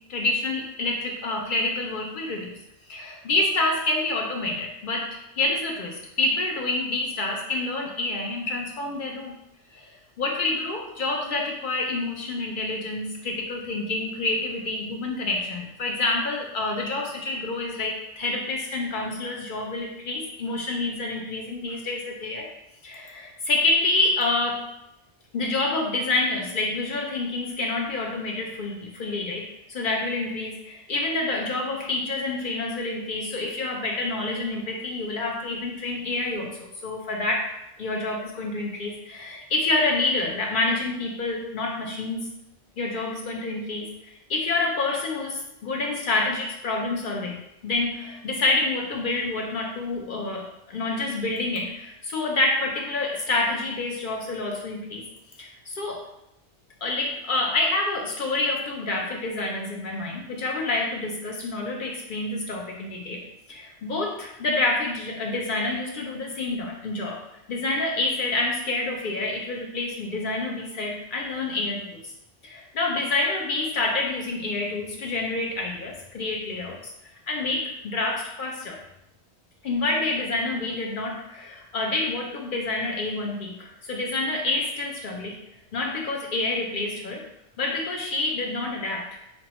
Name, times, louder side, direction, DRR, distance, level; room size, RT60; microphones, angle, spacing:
voice 1, 0.1-2.5 2.9-5.1 5.3-9.3 9.7-9.9 10.2-22.5 22.8-24.6 25.3-37.5 37.8-42.2 42.8-55.0 55.4-56.0 56.8-63.2 63.5-67.2 67.5-72.1 72.4-76.9 77.3-78.8 79.6-85.3 85.7-87.2 87.6-89.2, left 2 dB, 60° left, 0 dB, 0.6 m, -28 dB
5.2 x 2.0 x 2.8 m, 0.87 s
omnidirectional pair, 1.1 m